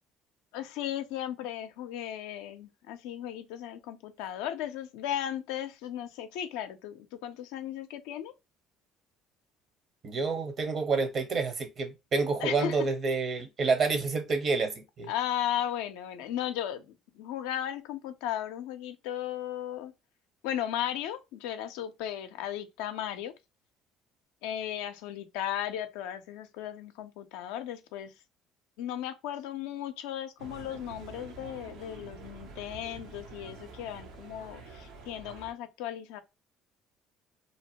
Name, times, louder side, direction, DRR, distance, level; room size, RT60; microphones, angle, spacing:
voice 1, 0.5-8.3 12.4-12.9 15.1-19.9 20.4-23.3 24.4-28.1 28.8-36.2, left 11 dB, 80° left, 0.4 m, -36 dB
voice 2, 10.0-15.1, right 4 dB, 50° right, 0.9 m, -28 dB
sound 1, 30.4-35.5, right 4 dB, 80° right, 0.7 m, -47 dB
2.8 x 2.1 x 2.8 m
supercardioid pair, 70°, 0 cm